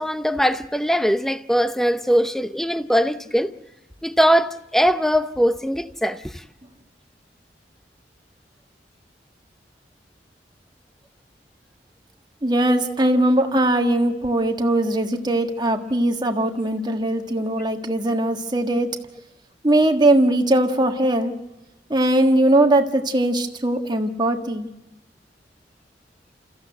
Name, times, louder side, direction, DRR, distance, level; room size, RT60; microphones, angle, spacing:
voice 1, 0.0-3.5 4.0-6.4, equal, ahead, 0.7 m, -21 dB
voice 2, 12.4-18.9 19.6-21.3 21.9-24.7, right 1 dB, 25° right, 1.6 m, -20 dB
29.0 x 15.0 x 7.8 m
head